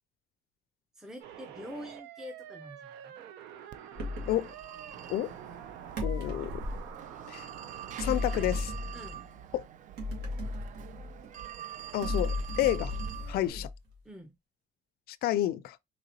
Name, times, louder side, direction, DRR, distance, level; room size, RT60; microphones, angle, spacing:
voice 1, 0.9-3.2 8.1-8.5 8.9-9.3 13.5-13.7 14.0-14.3, left 1 dB, 5° right, 0.6 m, -46 dB
sound 1, 1.2-8.1, right 9 dB, 90° right, 0.6 m, -47 dB
Telephone, 3.7-13.5, right 10 dB, 50° right, 0.4 m, -45 dB
sound 2, 4.0-4.4 6.0-6.9 8.0-9.2 10.0-11.3 12.0-13.9, left 2 dB, 70° right, 1.7 m, -35 dB
voice 2, 6.0-6.6 7.3-7.5 8.0-8.6 9.5-9.7 11.9-12.9 13.3-13.7 15.1-15.8, left 13 dB, 65° left, 0.4 m, -30 dB
3.9 x 3.0 x 2.9 m
cardioid pair, 110°, 17 cm